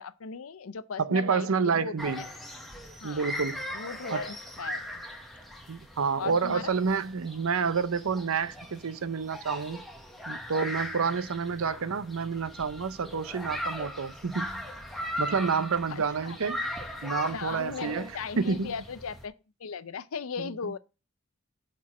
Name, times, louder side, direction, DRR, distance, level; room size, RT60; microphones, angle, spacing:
voice 1, 0.0-1.9 3.0-3.3 3.7-5.0 6.2-6.7 15.9-16.4 17.1-20.8, left 5 dB, 85° left, 0.6 m, -38 dB
voice 2, 1.0-2.3 3.0-3.6 4.1-4.2 5.7-9.8 10.3-14.6 15.2-16.6 17.0-18.1 18.4-18.7 20.4-20.5, right 5 dB, 90° right, 0.6 m, -29 dB
sound 1, 2.0-19.3, left 1 dB, ahead, 1.2 m, -39 dB
7.2 x 4.5 x 6.1 m
head